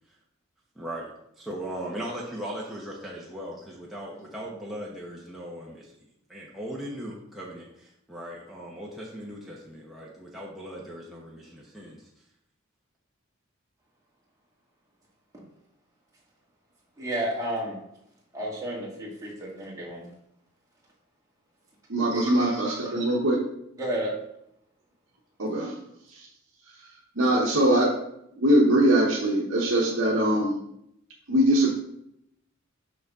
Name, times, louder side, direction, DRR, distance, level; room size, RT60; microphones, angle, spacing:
voice 1, 0.8-1.1 1.4-6.0 6.3-12.1, right 1 dB, ahead, -5 dB, 0.9 m, -38 dB
voice 2, 17.0-17.8 18.3-20.1 22.1-23.0 23.8-24.1, right 1 dB, 15° right, -4 dB, 1.7 m, -32 dB
voice 3, 21.9-23.4 25.4-25.7 26.1-26.2 27.2-27.9 28.4-30.6 31.3-31.7, right 1 dB, 65° right, -3 dB, 1.0 m, -22 dB
6.2 x 5.5 x 3.6 m, 0.78 s
head